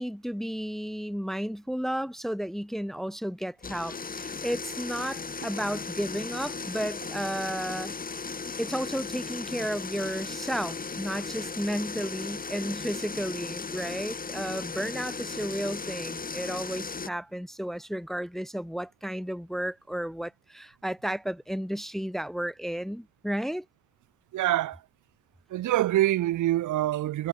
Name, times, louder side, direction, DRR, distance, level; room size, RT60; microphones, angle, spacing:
voice 1, 0.0-7.9 8.6-23.6, equal, ahead, 1.0 m, -33 dB
sound 1, 3.6-17.1, left 4 dB, 30° left, 2.7 m, -36 dB
voice 2, 24.3-24.8 25.5-27.3, right 14 dB, 80° right, 2.3 m, -25 dB
cardioid pair, 90°, 30 cm